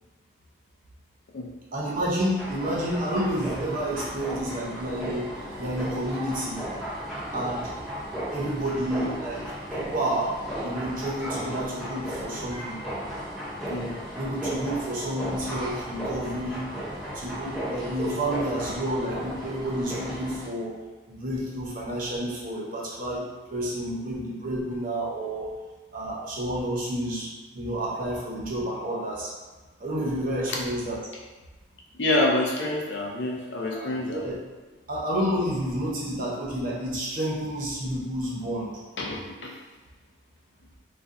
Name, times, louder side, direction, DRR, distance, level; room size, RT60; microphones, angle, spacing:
voice 1, 1.7-6.6 7.3-7.7 8.3-12.8 14.1-16.7 17.1-20.8 21.1-25.5 25.9-29.3 29.8-31.0 33.7-34.4 34.9-38.7, right 1 dB, 45° right, -5 dB, 0.6 m, -30 dB
sound 1, 2.4-20.5, right 1 dB, ahead, 0.5 m, -35 dB
voice 2, 32.0-34.2 39.0-39.5, left 2 dB, 65° left, -1 dB, 0.5 m, -27 dB
2.5 x 2.2 x 3.5 m, 1.2 s
head